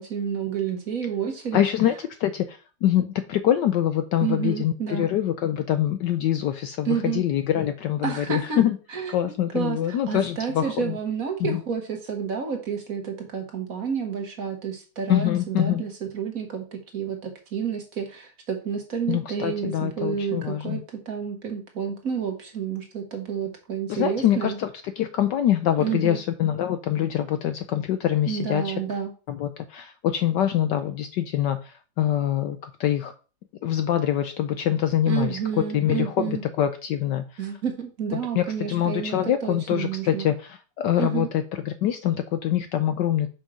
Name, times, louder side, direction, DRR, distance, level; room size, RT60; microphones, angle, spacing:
voice 1, 0.0-1.6 4.2-5.1 6.8-7.2 8.0-8.6 8.9-24.6 25.8-26.2 28.3-29.1 35.1-36.4 37.4-40.3 41.0-41.3, right 7 dB, 45° right, 3 dB, 1.5 m, -30 dB
voice 2, 1.5-8.8 9.1-11.0 11.4-11.6 15.1-15.8 19.1-20.8 23.9-24.7 25.0-28.7 29.3-33.1 33.6-35.4 35.7-37.4 38.1-43.3, left 11 dB, 70° left, 9 dB, 1.1 m, -25 dB
5.9 x 5.4 x 4.9 m, 0.35 s
omnidirectional pair, 2.3 m